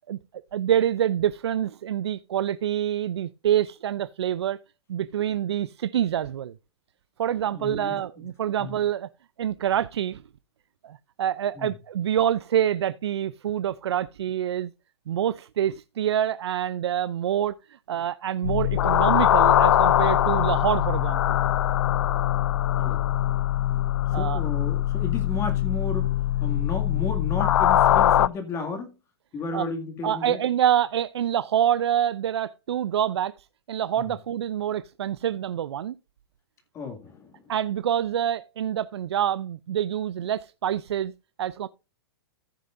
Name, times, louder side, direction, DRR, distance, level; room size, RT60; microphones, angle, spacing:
voice 1, 0.5-4.6 4.9-6.5 7.2-9.1 9.4-10.2 10.8-14.7 15.1-21.4 24.1-24.4 29.5-29.7 30.0-33.4 33.7-35.9 37.5-41.1 41.4-41.7, right 10 dB, 85° right, 0.5 m, -26 dB
voice 2, 7.5-8.3 8.6-8.7 11.5-11.7 22.8-23.1 24.1-28.9 29.3-30.4 34.0-34.1 36.7-37.4, left 4 dB, 20° left, 2.1 m, -33 dB
sound 1, 18.4-28.3, left 12 dB, 85° left, 0.4 m, -22 dB
14.5 x 6.7 x 2.6 m
hypercardioid pair, 145°, 13 cm